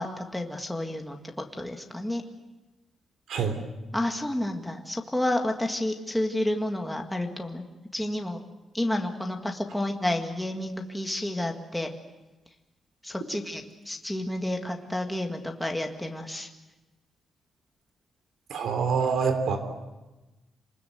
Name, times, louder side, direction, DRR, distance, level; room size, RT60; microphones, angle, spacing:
voice 1, 0.0-2.2 3.9-7.7 7.9-8.4 8.7-11.9 13.0-16.5, left 1 dB, 5° left, 3 dB, 1.7 m, -30 dB
voice 2, 18.5-19.6, right 5 dB, 75° right, 7 dB, 3.4 m, -25 dB
28.0 x 20.0 x 7.9 m, 1.1 s
wide cardioid pair, 180°, 0 cm